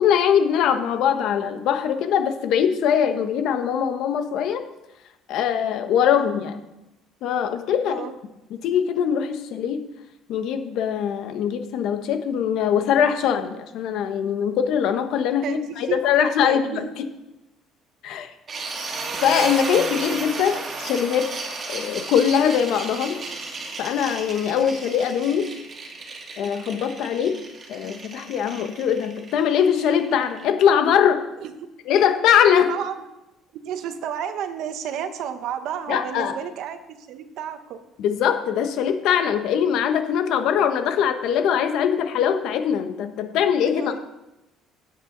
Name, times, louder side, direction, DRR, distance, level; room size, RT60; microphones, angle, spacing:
voice 1, 0.0-4.6 5.3-6.6 7.2-8.0 8.6-9.8 10.3-16.9 18.0-18.3 19.2-21.3 21.7-23.2 23.8-25.5 26.4-27.4 27.7-31.2 31.9-32.7 35.9-36.3 38.0-43.9, left 8 dB, 65° left, 7 dB, 1.2 m, -22 dB
voice 2, 15.4-16.0 16.4-16.9 31.4-31.7 32.6-32.9 33.6-37.8 43.8-44.0, right 9 dB, 65° right, 9 dB, 1.1 m, -31 dB
sound 1, 18.5-30.4, right 3 dB, 30° right, 1.9 m, -33 dB
16.0 x 8.9 x 4.0 m, 0.96 s
cardioid pair, 145°, 0 cm